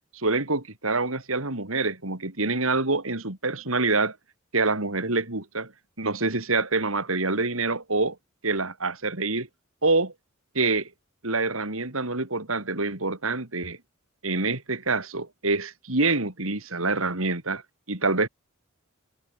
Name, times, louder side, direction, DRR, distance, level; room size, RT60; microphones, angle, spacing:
voice 1, 0.1-4.2 4.5-5.7 6.0-8.2 8.4-9.5 9.8-10.1 10.5-10.9 11.2-13.8 14.2-17.6 17.9-18.3, right 3 dB, 75° right, 3.8 m, -26 dB
head